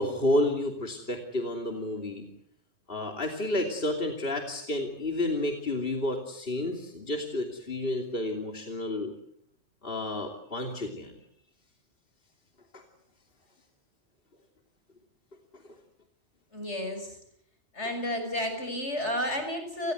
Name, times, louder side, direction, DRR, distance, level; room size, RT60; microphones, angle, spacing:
voice 1, 0.0-2.2 2.9-9.1 9.8-11.1 12.7-12.8, left 1 dB, 55° left, 3 dB, 3.1 m, -30 dB
voice 2, 16.5-17.2 17.7-19.9, left 1 dB, 85° left, 6 dB, 6.7 m, -31 dB
30.0 x 20.0 x 8.0 m, 0.70 s
omnidirectional pair, 1.1 m